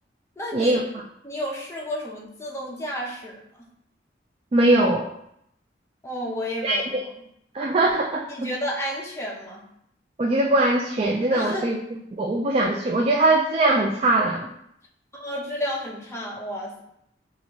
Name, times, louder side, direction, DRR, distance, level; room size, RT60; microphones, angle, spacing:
voice 1, 0.4-0.8 1.2-3.4 6.0-7.0 8.3-9.6 11.3-11.6 15.1-16.8, equal, 15° left, -3 dB, 0.7 m, -31 dB
voice 2, 4.5-5.1 6.6-7.0 7.5-8.5 10.2-14.5, right 2 dB, 35° right, 0 dB, 0.3 m, -21 dB
5.1 x 2.5 x 3.0 m, 0.75 s
head